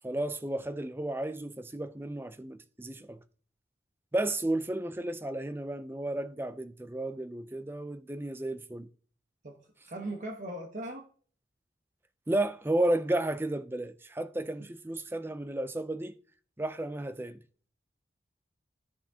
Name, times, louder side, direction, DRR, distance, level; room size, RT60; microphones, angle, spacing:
voice 1, 0.0-3.2 4.1-8.9 12.3-16.2 16.6-17.4, right 1 dB, 10° right, 0.4 m, -33 dB
voice 2, 9.9-11.1, right 1 dB, 45° right, 1.1 m, -38 dB
12.5 x 5.8 x 2.8 m
head